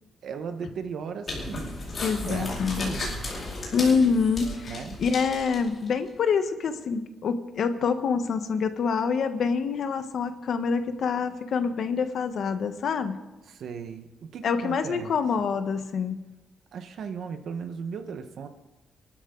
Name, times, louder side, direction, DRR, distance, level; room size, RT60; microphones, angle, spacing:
voice 1, 0.2-1.8 2.3-3.3 4.7-5.0 13.5-15.1 16.7-18.5, right 6 dB, 65° right, 7 dB, 1.4 m, -37 dB
sound 1, 1.3-5.9, left 2 dB, 35° left, 4.9 m, -35 dB
voice 2, 2.0-3.0 3.7-13.2 14.4-16.2, left 5 dB, 60° left, 8 dB, 1.3 m, -26 dB
27.0 x 12.5 x 4.0 m, 1.1 s
cardioid pair, 150°, 0 cm